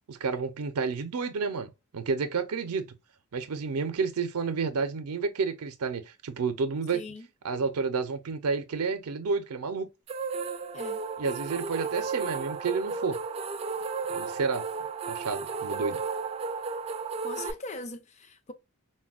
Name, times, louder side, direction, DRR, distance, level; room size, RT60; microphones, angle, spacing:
voice 1, 0.1-3.0 3.3-7.0 7.4-9.9 11.2-13.2 14.1-14.7 15.1-16.0, right 5 dB, 90° right, 0.5 m, -30 dB
voice 2, 6.9-7.3 10.7-11.0 17.2-18.5, left 2 dB, 30° left, 0.5 m, -40 dB
sound 1, 10.1-17.5, right 5 dB, 30° right, 0.3 m, -34 dB
4.1 x 2.2 x 2.3 m
head